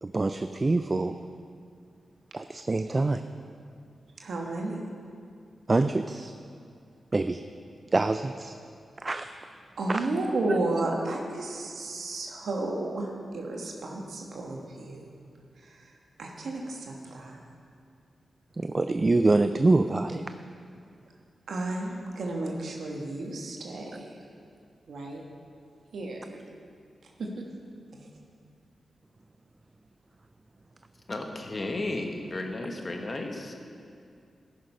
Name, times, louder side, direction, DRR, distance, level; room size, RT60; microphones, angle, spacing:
voice 1, 0.0-1.2 2.3-3.2 5.7-6.3 7.1-7.4 7.9-8.5 9.0-9.3 9.9-10.1 18.6-20.2, right 2 dB, 35° right, 9 dB, 0.3 m, -25 dB
voice 2, 4.2-4.8 9.8-15.1 15.6-15.8 16.2-17.4 21.5-24.1 24.9-25.2 25.9-26.4 27.2-27.3 27.9-28.1, right 2 dB, 80° right, 0 dB, 1.3 m, -32 dB
voice 3, 31.1-33.5, left 2 dB, 40° left, 3 dB, 1.3 m, -33 dB
14.0 x 6.4 x 5.5 m, 2.4 s
cardioid pair, 70°, 0 cm